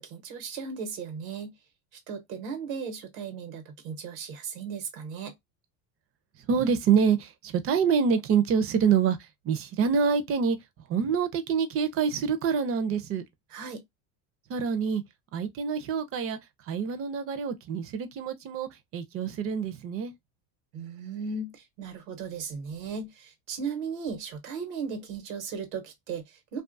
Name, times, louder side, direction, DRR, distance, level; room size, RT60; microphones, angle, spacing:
voice 1, 0.0-1.5 2.1-5.3 13.5-13.8 20.7-26.6, right 5 dB, 85° right, 1.0 m, -36 dB
voice 2, 6.5-10.6 10.9-13.2 14.5-15.0 15.3-16.4 16.6-20.1, right 6 dB, 35° right, 0.5 m, -26 dB
2.5 x 2.4 x 2.5 m
supercardioid pair, 125°, 40 cm